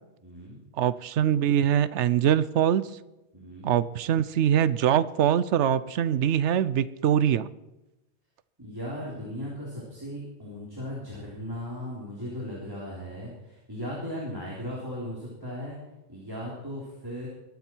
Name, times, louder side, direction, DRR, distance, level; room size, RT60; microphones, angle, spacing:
voice 1, 0.2-0.6 3.3-3.7 8.6-15.8 16.1-17.3, equal, 20° right, -5 dB, 3.5 m, -37 dB
voice 2, 0.8-2.9 3.6-7.5, right 10 dB, 90° right, 16 dB, 1.0 m, -23 dB
22.0 x 9.4 x 4.5 m, 0.98 s
omnidirectional pair, 1.1 m